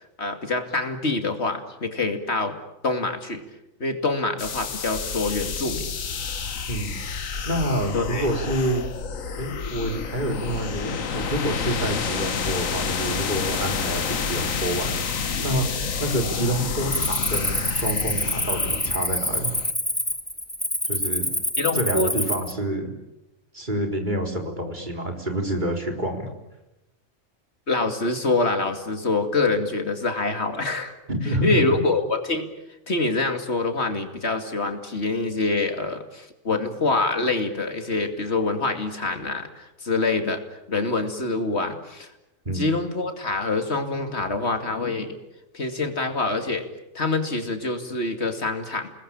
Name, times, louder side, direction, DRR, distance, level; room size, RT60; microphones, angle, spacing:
voice 1, 0.2-2.5 2.8-3.4 3.8-5.9 7.9-8.3 21.6-22.1 27.7-30.9 31.2-32.5 32.9-40.4 40.7-42.1 42.5-45.2 45.5-46.6 46.9-48.9, left 3 dB, 55° left, 6 dB, 2.8 m, -25 dB
sound 1, 4.4-19.7, left 6 dB, 80° left, 1.7 m, -29 dB
voice 2, 6.7-7.0 7.5-8.8 9.4-15.7 16.0-19.5 20.9-21.3 21.7-22.9 23.5-26.3 31.1-31.6 42.4-42.6, right 1 dB, 35° right, 3 dB, 4.1 m, -28 dB
Cricket, 16.9-22.5, left 1 dB, 5° left, 1.5 m, -26 dB
29.0 x 20.0 x 8.9 m, 0.94 s
omnidirectional pair, 1.4 m